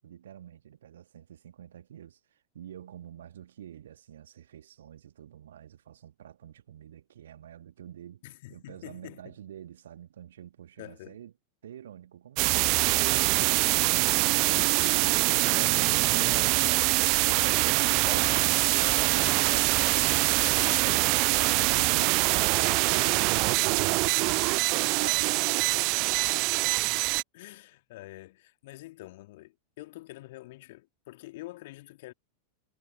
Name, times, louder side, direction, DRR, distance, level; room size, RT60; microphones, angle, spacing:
voice 1, 0.0-8.2 8.5-11.3 11.6-13.8 21.1-26.5, right 10 dB, 60° right, 2.0 m, -47 dB
voice 2, 8.2-9.4 10.8-11.2 14.5-21.9 22.3-23.2 24.3-24.7 27.3-32.1, left 18 dB, 50° left, 2.9 m, -45 dB
sound 1, 12.4-27.2, right 29 dB, 45° right, 0.3 m, -24 dB
figure-of-eight pair, 90°, 0 cm